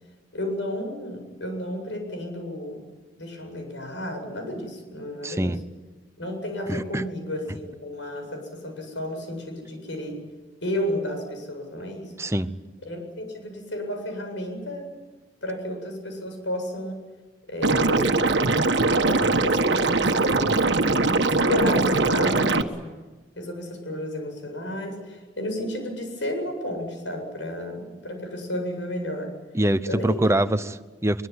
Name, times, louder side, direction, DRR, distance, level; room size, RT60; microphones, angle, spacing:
voice 1, 0.3-2.8 3.2-5.5 6.2-10.2 10.6-12.1 12.8-14.9 15.4-17.0 17.5-18.4 19.0-20.5 21.0-22.7 23.4-29.3 29.9-30.6, left 1 dB, 85° left, 4 dB, 7.9 m, -32 dB
voice 2, 5.2-5.6 6.7-7.0 12.2-12.5 29.5-31.3, right 1 dB, 15° right, 12 dB, 0.9 m, -24 dB
Liquid, 17.6-22.6, right 3 dB, 70° right, 1.5 m, -21 dB
23.0 x 23.0 x 9.7 m, 1.3 s
head